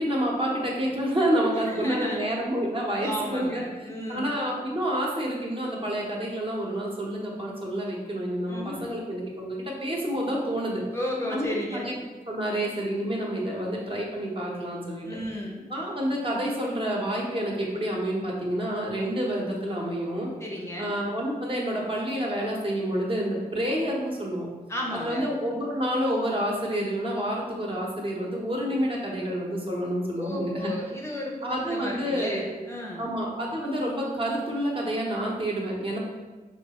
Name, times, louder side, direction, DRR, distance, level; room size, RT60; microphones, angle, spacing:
voice 1, 0.0-3.6 4.1-10.8 11.3-11.9 12.3-15.1 15.7-20.3 20.8-24.5 24.9-30.7 31.4-32.5 33.0-36.0, equal, 35° right, -2 dB, 0.8 m, -28 dB
voice 2, 1.7-2.3 3.0-4.4 8.5-9.0 10.9-11.9 15.0-15.6 20.4-21.0 24.7-25.3 30.2-33.1, left 1 dB, 15° left, -2 dB, 0.6 m, -33 dB
4.5 x 2.3 x 2.9 m, 1.3 s
wide cardioid pair, 80°, 16 cm